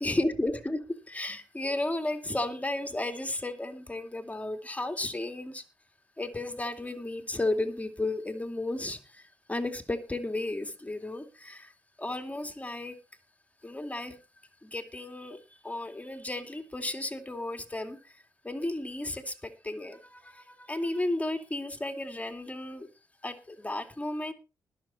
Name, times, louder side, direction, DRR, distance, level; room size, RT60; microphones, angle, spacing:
voice 1, 0.0-5.6 6.2-11.7 12.0-12.9 13.6-14.2 14.6-22.9 23.2-24.3, left 2 dB, 15° left, 6 dB, 2.6 m, -34 dB
20.0 x 7.0 x 4.3 m, 0.31 s
cardioid pair, 65°, 9 cm